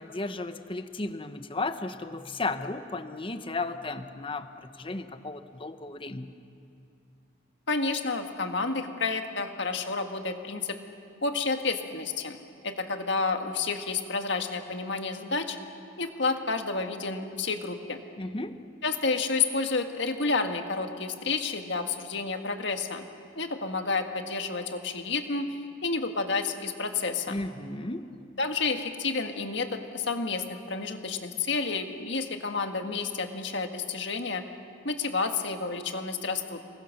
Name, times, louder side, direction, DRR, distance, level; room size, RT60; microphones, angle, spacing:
voice 1, 0.0-6.3 18.2-18.7 27.3-28.1, left 2 dB, 25° left, 10 dB, 0.8 m, -34 dB
voice 2, 7.7-10.8 11.2-12.4 12.6-15.6 16.0-18.0 18.8-23.0 23.4-27.4 28.4-34.4 34.8-36.6, left 4 dB, 60° left, 5 dB, 1.8 m, -30 dB
29.0 x 21.5 x 6.6 m, 2.5 s
head